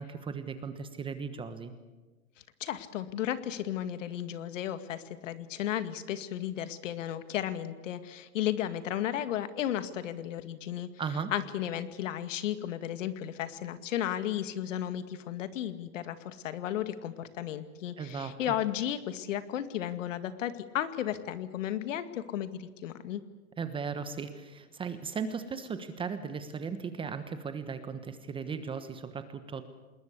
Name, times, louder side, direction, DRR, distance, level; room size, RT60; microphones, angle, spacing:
voice 1, 0.0-1.7 11.0-11.3 18.0-18.5 23.6-29.6, right 5 dB, 10° right, 10 dB, 1.2 m, -37 dB
voice 2, 2.6-10.9 11.3-23.2, left 11 dB, 55° left, 11 dB, 2.1 m, -34 dB
27.0 x 21.0 x 8.4 m, 1.2 s
hypercardioid pair, 140°, 44 cm